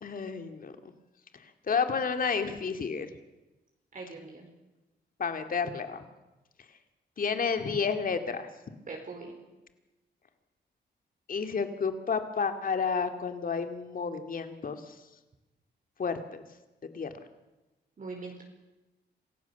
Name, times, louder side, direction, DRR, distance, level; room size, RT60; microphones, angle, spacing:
voice 1, 0.0-0.9 1.4-3.1 5.2-6.0 7.2-8.5 11.3-15.0 16.0-16.4 16.9-17.1, left 5 dB, 50° left, 7 dB, 2.2 m, -31 dB
voice 2, 3.9-4.5 8.9-9.3 18.0-18.4, right 3 dB, 50° right, 1 dB, 4.6 m, -41 dB
27.0 x 16.0 x 7.1 m, 1.1 s
cardioid pair, 90°, 18 cm